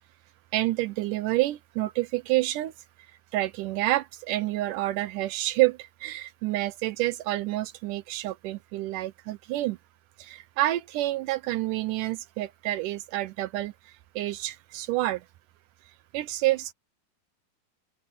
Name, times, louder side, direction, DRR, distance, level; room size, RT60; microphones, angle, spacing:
voice 1, 0.5-2.7 3.3-9.8 10.2-13.7 14.2-15.2 16.1-16.7, right 17 dB, 85° right, 1.9 m, -28 dB
open air
omnidirectional pair, 4.4 m